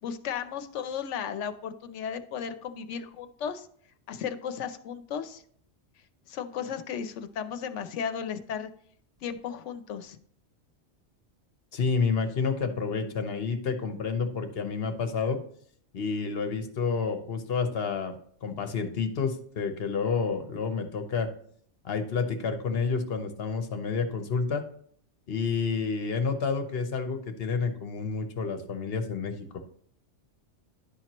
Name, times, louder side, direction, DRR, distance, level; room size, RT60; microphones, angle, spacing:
voice 1, 0.0-3.7 4.1-5.4 6.3-8.7 9.2-10.2, left 7 dB, 85° left, 10 dB, 1.0 m, -35 dB
voice 2, 11.7-15.4 15.9-18.2 18.4-21.3 21.8-24.6 25.3-29.6, left 5 dB, 60° left, 7 dB, 1.0 m, -29 dB
11.5 x 4.4 x 2.9 m, 0.62 s
omnidirectional pair, 1.2 m